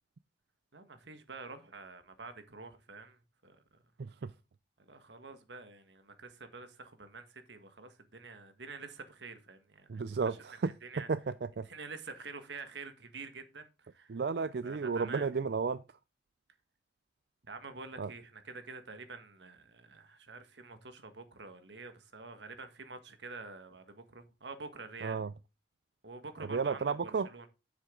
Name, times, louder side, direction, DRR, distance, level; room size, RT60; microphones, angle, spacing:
voice 1, 0.7-3.6 4.9-10.4 10.6-11.1 11.6-14.2 14.6-15.4 17.4-25.2 26.0-27.5, right 4 dB, 90° right, 1.6 m, -47 dB
voice 2, 4.0-4.3 9.9-11.7 14.1-15.8 18.0-18.1 25.0-25.3 26.5-27.3, right 5 dB, 65° right, 0.4 m, -33 dB
10.0 x 7.8 x 3.8 m
head